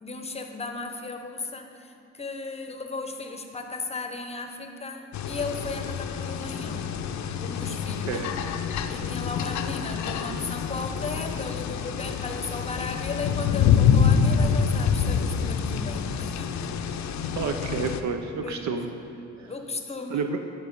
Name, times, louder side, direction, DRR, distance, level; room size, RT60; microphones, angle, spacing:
voice 1, 0.0-6.9 7.4-8.2 8.9-16.7 18.4-18.8 19.4-20.3, left 3 dB, 20° left, 5 dB, 0.8 m, -36 dB
sound 1, 5.1-18.0, left 7 dB, 65° left, 0.5 m, -26 dB
voice 2, 17.3-18.9 19.4-19.5 20.1-20.4, right 5 dB, 70° right, 6 dB, 0.5 m, -29 dB
10.5 x 4.6 x 5.3 m, 2.5 s
cardioid pair, 90°, 30 cm